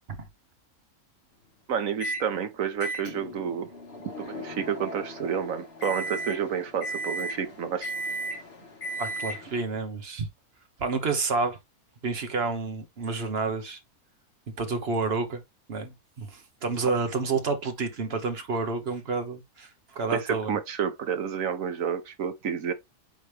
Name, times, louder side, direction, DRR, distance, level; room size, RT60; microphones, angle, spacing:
voice 1, 1.7-3.7 4.0-7.9 16.8-16.9 20.1-22.7, right 7 dB, 65° right, 1.3 m, -30 dB
Microwave oven, 2.0-2.3 2.8-9.6, right 1 dB, 40° left, 2.0 m, -36 dB
voice 2, 9.0-10.3 10.8-11.6 12.0-13.8 14.6-15.4 15.7-20.5, right 4 dB, 45° right, 1.2 m, -29 dB
8.9 x 3.2 x 3.3 m
omnidirectional pair, 1.6 m